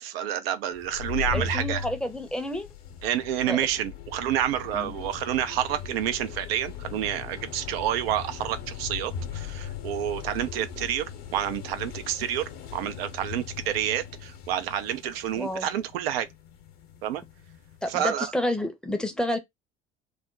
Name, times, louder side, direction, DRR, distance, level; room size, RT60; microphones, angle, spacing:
voice 1, 0.0-1.8 3.0-16.3 17.0-17.2 17.9-18.3, right 10 dB, 70° right, 0.5 m, -29 dB
sound 1, 0.7-18.1, left 7 dB, 60° left, 0.9 m, -39 dB
voice 2, 1.3-2.7 3.4-3.6 4.7-4.9 15.4-15.7 17.8-19.4, left 1 dB, 5° left, 0.6 m, -29 dB
2.4 x 2.1 x 3.7 m
hypercardioid pair, 70°, 31 cm